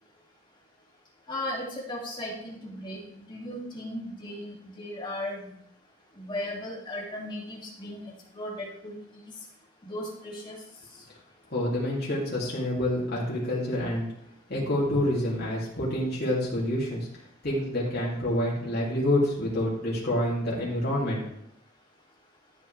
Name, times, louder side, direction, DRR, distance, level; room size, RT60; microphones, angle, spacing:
voice 1, 1.3-3.0 3.3-5.5 6.2-9.2 9.8-10.6, left 1 dB, 25° left, -3 dB, 2.7 m, -36 dB
voice 2, 11.5-14.1 14.5-17.1 17.4-21.2, left 1 dB, 55° left, -6 dB, 3.0 m, -27 dB
13.0 x 8.0 x 3.5 m, 0.76 s
head